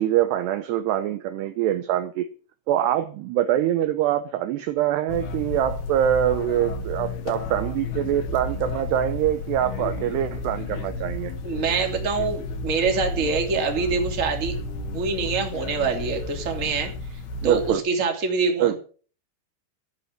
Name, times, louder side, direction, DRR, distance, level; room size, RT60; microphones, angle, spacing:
voice 1, 0.0-2.3 2.7-11.3 17.4-17.8 18.6-18.8, right 11 dB, 80° right, 2.5 m, -24 dB
sound 1, 5.1-17.8, left 3 dB, 60° left, 3.2 m, -32 dB
voice 2, 11.4-14.5 14.9-18.8, right 5 dB, 20° right, 2.1 m, -25 dB
14.0 x 9.8 x 7.5 m
omnidirectional pair, 5.8 m